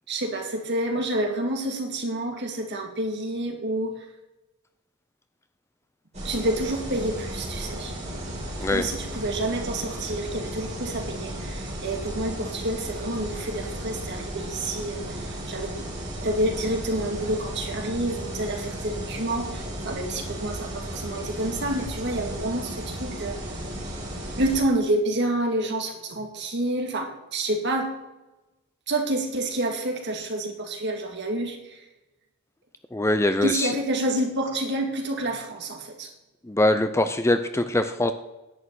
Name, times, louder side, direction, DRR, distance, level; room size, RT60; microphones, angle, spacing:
voice 1, 0.1-4.0 6.2-7.9 8.7-15.9 16.2-23.4 24.4-27.9 28.9-31.8 33.4-36.1, right 1 dB, 50° right, 2 dB, 2.3 m, -28 dB
sound 1, 6.1-24.6, right 1 dB, 30° right, 4.3 m, -34 dB
voice 2, 32.9-33.8 36.4-38.1, left 1 dB, 10° left, 10 dB, 0.5 m, -23 dB
11.0 x 6.5 x 9.0 m, 1.0 s
head